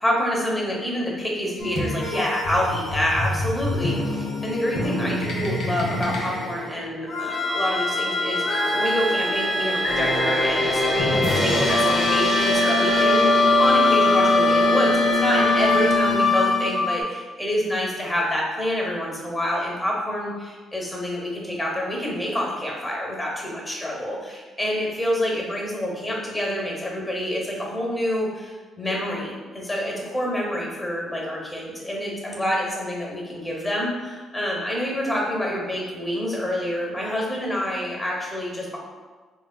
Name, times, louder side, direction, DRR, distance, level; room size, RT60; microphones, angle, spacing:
voice 1, 0.0-38.8, equal, 10° left, -2 dB, 0.8 m, -27 dB
sound 1, 1.6-17.0, left 2 dB, 65° left, 0.5 m, -22 dB
sound 2, 7.3-16.0, equal, 10° right, 0.4 m, -30 dB
3.1 x 2.3 x 2.2 m, 1.4 s
cardioid pair, 90°, 0 cm